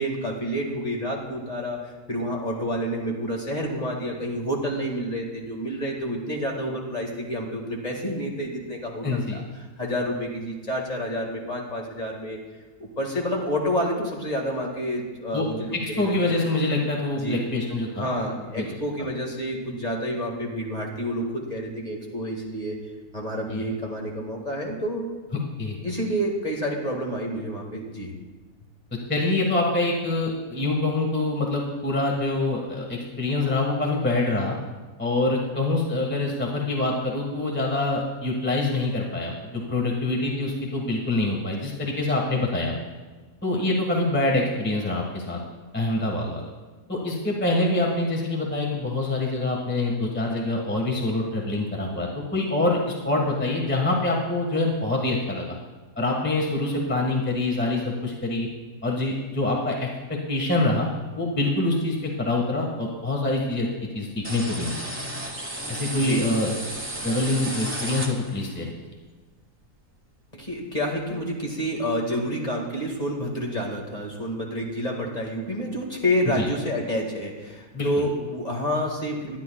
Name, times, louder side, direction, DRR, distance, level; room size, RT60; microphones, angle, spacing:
voice 1, 0.0-9.4 9.8-12.4 12.8-16.3 17.1-17.4 18.0-22.8 23.1-25.1 25.8-28.1 66.0-66.2 70.3-79.4, equal, 30° left, 0 dB, 1.9 m, -29 dB
voice 2, 9.0-9.4 15.3-15.5 15.7-18.1 18.5-18.7 23.5-23.6 25.3-25.8 29.1-34.6 35.0-42.7 43.4-45.4 45.7-46.4 46.9-55.6 56.0-58.5 58.8-60.9 61.2-63.7 63.9-64.9 65.7-66.5 67.0-68.7 76.4-76.5 77.7-77.9, left 2 dB, 10° left, 0 dB, 1.4 m, -25 dB
sound 1, 64.2-68.6, right 1 dB, 10° right, 1.1 m, -33 dB
23.0 x 10.5 x 2.3 m, 1.3 s
omnidirectional pair, 1.6 m